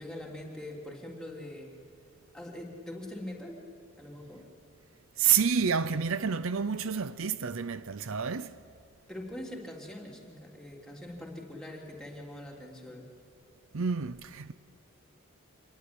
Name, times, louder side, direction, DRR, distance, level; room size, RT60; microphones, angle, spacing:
voice 1, 0.0-1.8 2.3-3.6 4.0-4.4 9.1-13.1, left 1 dB, 5° left, 3.5 m, -43 dB
voice 2, 5.2-8.6 13.7-14.5, right 7 dB, 70° right, 0.7 m, -29 dB
26.5 x 21.5 x 9.9 m
head